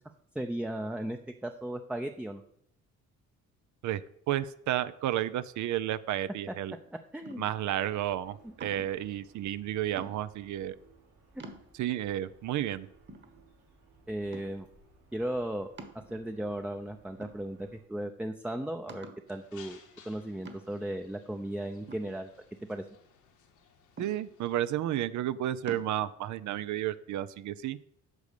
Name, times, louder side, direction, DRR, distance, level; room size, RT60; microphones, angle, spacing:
voice 1, 0.3-2.4 7.1-7.4 8.4-8.5 11.3-11.4 14.1-14.7 15.1-15.7 16.1-22.3 22.7-22.8, right 1 dB, 5° right, 5 dB, 0.6 m, -36 dB
voice 2, 3.8-6.8 7.4-10.8 11.7-12.9 24.0-27.8, right 12 dB, 70° right, 15 dB, 0.5 m, -32 dB
sound 1, 7.2-7.7 8.6-9.0 10.0-10.5 11.0-11.1 11.4-12.0 12.6-12.7 13.1-13.8 14.3-14.7 15.8-16.5 17.2-17.8 18.2-18.3 18.9-19.3 20.4-20.9 21.9-22.8 24.0-24.6 25.7-25.9, right 3 dB, 35° right, 1.4 m, -47 dB
sound 2, 7.9-17.8, right 3 dB, 90° right, 4.2 m, -62 dB
sound 3, 19.3-24.6, left 7 dB, 80° left, 1.7 m, -59 dB
8.3 x 5.3 x 6.7 m, 0.71 s
cardioid pair, 90°, 30 cm